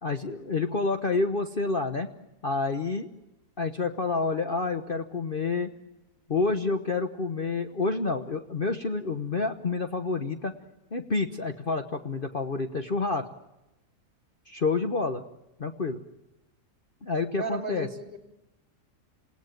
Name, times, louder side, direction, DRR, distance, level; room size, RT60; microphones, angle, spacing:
voice 1, 0.0-2.1 2.4-3.1 3.6-5.7 6.3-10.5 10.9-13.3 14.5-15.2 15.6-16.0 17.0-17.9, left 3 dB, 40° left, 6 dB, 1.2 m, -28 dB
voice 2, 17.4-18.2, right 2 dB, 35° right, 5 dB, 3.0 m, -34 dB
28.5 x 17.5 x 9.2 m, 0.96 s
omnidirectional pair, 1.7 m